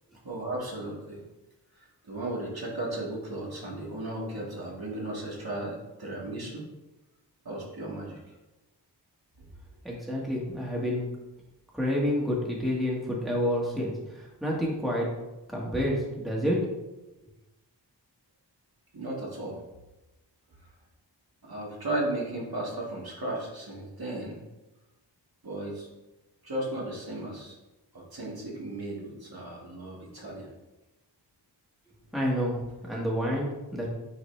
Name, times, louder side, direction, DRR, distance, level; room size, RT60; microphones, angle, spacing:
voice 1, 0.2-1.2 1.8-6.6 7.4-8.3 9.4-9.5 18.9-19.6 21.5-24.4 25.4-25.9 26.4-27.5 27.9-30.5, right 1 dB, 60° right, -4 dB, 2.0 m, -35 dB
voice 2, 9.8-11.1 11.7-13.9 14.4-15.1 15.5-16.6 32.1-32.6 32.9-33.9, equal, ahead, -4 dB, 1.7 m, -28 dB
9.5 x 4.1 x 3.3 m, 1.0 s
wide cardioid pair, 75°, 42 cm